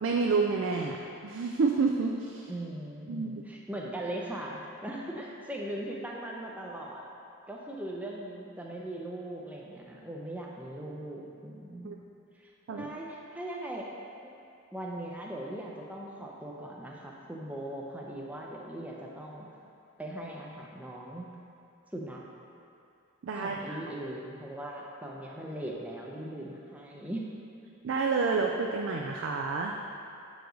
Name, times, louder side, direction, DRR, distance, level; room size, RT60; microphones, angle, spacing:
voice 1, 0.0-2.5 3.1-3.3 11.8-12.0 12.7-12.9 23.2-23.8 27.8-29.7, right 4 dB, 60° right, 1 dB, 0.4 m, -29 dB
voice 2, 2.5-7.0 7.5-11.9 12.3-13.9 14.2-14.3 14.7-19.5 20.0-21.3 21.9-22.2 23.3-27.3, right 1 dB, 5° right, -2 dB, 0.6 m, -39 dB
7.9 x 4.8 x 3.9 m, 2.6 s
head